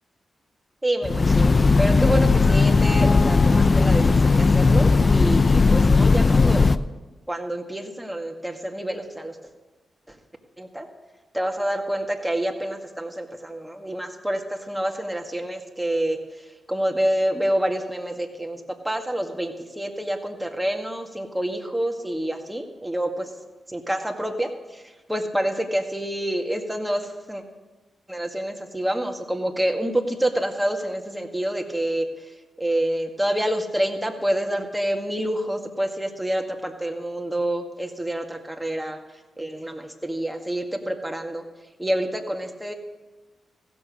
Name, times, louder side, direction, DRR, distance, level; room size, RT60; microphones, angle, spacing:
voice 1, 0.8-6.7 7.3-9.4 10.6-10.9 11.3-16.2 16.7-23.3 23.7-24.8 25.1-27.4 28.1-32.0 32.6-39.0 39.4-41.4 41.8-42.7, right 1 dB, 10° right, 3 dB, 2.0 m, -27 dB
Train, 1.0-6.8, left 4 dB, 45° left, 0.5 m, -17 dB
15.5 x 7.0 x 6.4 m, 1.2 s
supercardioid pair, 40°, 0 cm